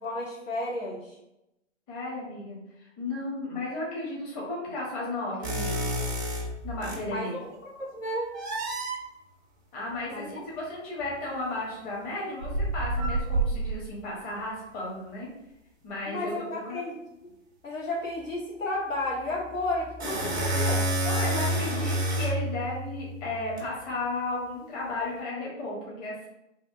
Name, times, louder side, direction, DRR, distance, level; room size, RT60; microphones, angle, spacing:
voice 1, 0.0-1.2 7.1-8.3 10.1-10.3 16.1-17.3 17.6-20.9, left 1 dB, 90° left, -3 dB, 1.4 m, -33 dB
voice 2, 1.9-5.9 6.6-7.3 9.7-15.3 15.8-16.8 21.0-26.3, left 2 dB, 30° left, -5 dB, 1.2 m, -34 dB
sound 1, 5.4-7.1 8.3-9.0 11.0-11.1 12.4-14.0 19.5-23.6, right 1 dB, 20° right, 0.3 m, -29 dB
3.4 x 2.5 x 2.5 m, 0.87 s
hypercardioid pair, 135°, 38 cm